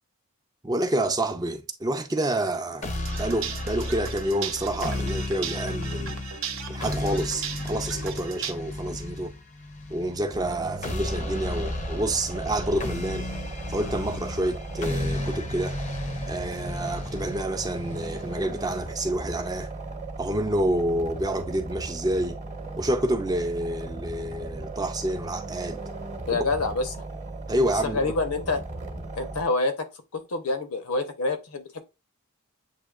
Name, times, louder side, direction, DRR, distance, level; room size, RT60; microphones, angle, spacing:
voice 1, 0.6-6.2 6.7-9.3 9.9-13.3 13.7-15.8 16.3-19.7 20.2-22.4 22.8-25.8 26.3-26.4 27.5-28.1, right 1 dB, 15° right, 0.4 m, -28 dB
sound 1, 2.8-18.8, left 2 dB, 35° left, 0.5 m, -34 dB
sound 2, 2.9-8.5, right 7 dB, 65° right, 0.6 m, -37 dB
sound 3, 10.3-29.5, right 2 dB, 35° right, 0.9 m, -37 dB
voice 2, 26.3-26.9 27.8-28.6 29.1-29.9 30.1-31.8, left 3 dB, 85° left, 0.9 m, -27 dB
7.4 x 2.8 x 2.3 m
head